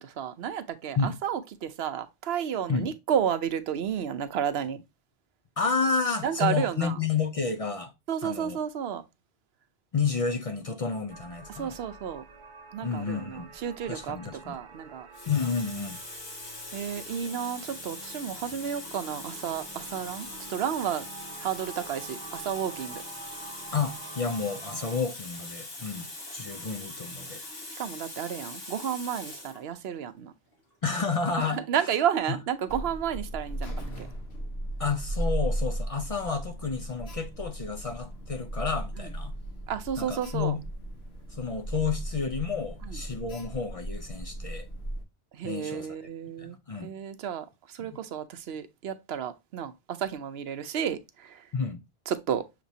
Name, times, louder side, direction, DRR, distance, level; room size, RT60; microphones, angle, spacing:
voice 1, 0.0-4.8 6.2-7.0 8.1-9.0 11.5-12.2 12.7-15.1 16.7-21.0 21.3-23.0 27.8-30.3 31.4-34.1 39.0-39.1 39.7-40.6 42.8-43.0 45.3-51.5 52.1-52.4, right 8 dB, 80° right, 0.9 m, -32 dB
voice 2, 5.6-7.9 8.2-8.6 9.9-11.8 12.8-13.5 13.9-14.6 15.3-16.0 23.7-27.4 30.8-31.6 34.8-39.3 40.0-40.6 41.3-44.7 45.4-45.9 46.4-46.9 47.9-48.0 51.5-51.8, left 5 dB, 45° left, 0.5 m, -30 dB
sound 1, 11.1-25.0, right 4 dB, 50° right, 0.9 m, -47 dB
Water tap faucet, 14.3-14.6 15.1-29.6 30.5-30.7, left 2 dB, 70° left, 1.9 m, -42 dB
Alarm, 32.7-45.0, right 1 dB, 90° left, 1.3 m, -36 dB
6.7 x 3.0 x 2.6 m
omnidirectional pair, 1.0 m